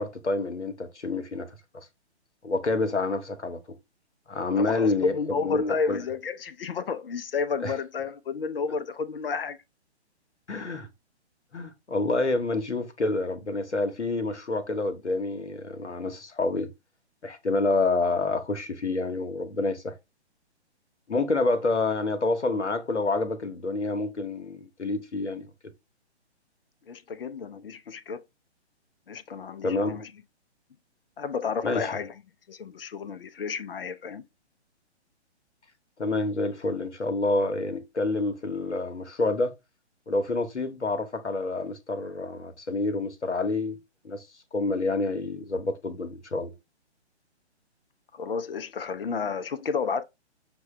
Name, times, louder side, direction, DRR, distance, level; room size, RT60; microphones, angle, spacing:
voice 1, 0.0-1.5 2.4-3.6 4.3-6.0 7.6-7.7 10.5-10.9 11.5-16.7 17.2-19.9 21.1-25.5 29.6-30.0 31.6-31.9 36.0-39.5 40.1-43.8 44.0-44.2 44.5-46.5, left 3 dB, 80° left, 1.0 m, -28 dB
voice 2, 4.6-9.6 26.9-28.2 29.1-30.1 31.2-32.1 32.5-34.2 48.1-50.0, left 5 dB, 55° left, 0.6 m, -31 dB
6.2 x 2.2 x 3.1 m
figure-of-eight pair, 130°, 34 cm